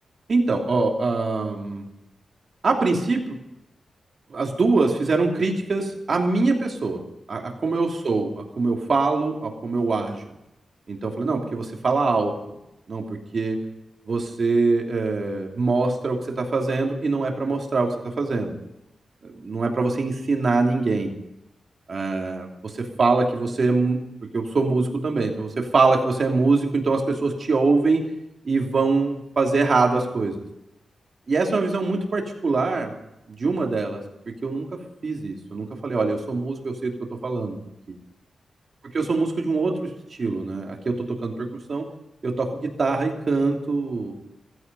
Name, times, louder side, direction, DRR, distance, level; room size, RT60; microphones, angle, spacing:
voice 1, 0.3-1.8 2.6-3.4 4.3-7.0 7.3-10.2 10.9-12.6 12.9-13.6 14.1-18.6 19.2-21.2 21.9-24.0 24.3-28.0 28.4-30.4 31.3-32.9 33.3-34.7 35.0-37.6 37.9-38.0 38.9-39.9 40.2-41.9 42.2-44.1, right 3 dB, 45° right, 1 dB, 2.9 m, -23 dB
16.5 x 15.5 x 5.4 m, 0.88 s
wide cardioid pair, 125°, 0 cm